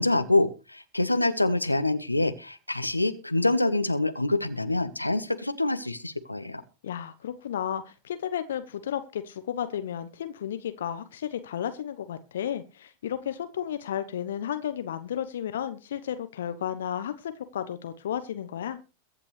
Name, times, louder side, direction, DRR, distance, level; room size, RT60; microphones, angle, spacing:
voice 1, 0.0-6.6, left 2 dB, 85° left, 10 dB, 1.3 m, -26 dB
voice 2, 6.8-18.8, left 9 dB, 60° left, 11 dB, 1.0 m, -33 dB
23.0 x 8.9 x 3.3 m, 0.32 s
figure-of-eight pair, 90°, 0 cm